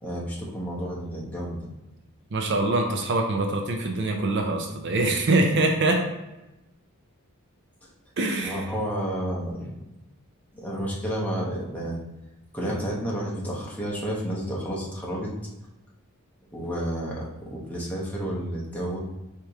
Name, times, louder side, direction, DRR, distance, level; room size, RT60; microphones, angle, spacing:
voice 1, 0.0-1.7 8.4-9.7 10.5-12.0 12.5-15.3 16.5-19.0, equal, 5° left, -5 dB, 0.9 m, -31 dB
voice 2, 2.3-6.0 8.2-8.7, right 2 dB, 55° right, 3 dB, 0.5 m, -24 dB
4.7 x 2.9 x 3.5 m, 0.96 s
head